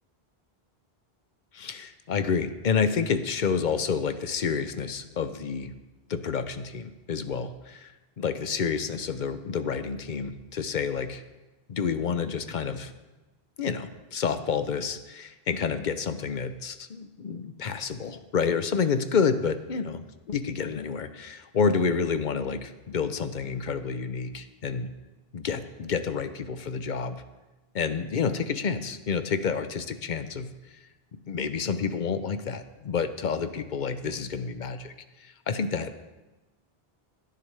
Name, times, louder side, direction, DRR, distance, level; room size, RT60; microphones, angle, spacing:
voice 1, 1.5-5.7 6.1-11.2 11.7-12.9 13.6-24.9 25.3-27.2 27.7-30.8 31.1-36.0, left 6 dB, 50° left, 10 dB, 0.8 m, -29 dB
17.0 x 10.5 x 3.4 m, 1.1 s
omnidirectional pair, 1.0 m